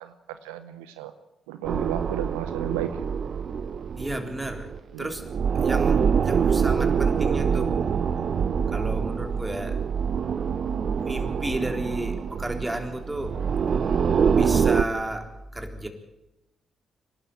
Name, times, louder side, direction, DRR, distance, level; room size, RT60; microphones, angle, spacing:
voice 1, 0.0-1.1 1.5-2.9 4.9-5.1, right 13 dB, 85° right, 11 dB, 0.7 m, -33 dB
sound 1, 1.6-4.8 5.1-14.8, right 6 dB, 55° right, 1.0 m, -25 dB
voice 2, 4.0-4.7 5.0-7.7 8.7-9.8 11.0-15.9, right 1 dB, 20° right, 6 dB, 3.8 m, -33 dB
26.0 x 12.0 x 9.1 m, 0.94 s
hypercardioid pair, 40°, 0 cm